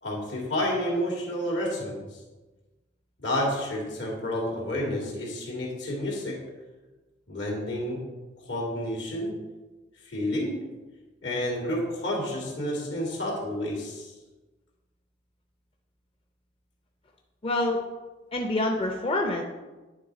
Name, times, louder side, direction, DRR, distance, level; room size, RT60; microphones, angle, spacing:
voice 1, 0.0-2.2 3.2-6.4 7.3-8.0 8.5-9.4 10.1-10.6 11.2-14.1, left 1 dB, 80° left, -2 dB, 2.3 m, -30 dB
voice 2, 17.4-17.8 18.3-19.4, left 2 dB, 30° left, 2 dB, 0.5 m, -26 dB
9.7 x 3.5 x 5.1 m, 1.2 s
head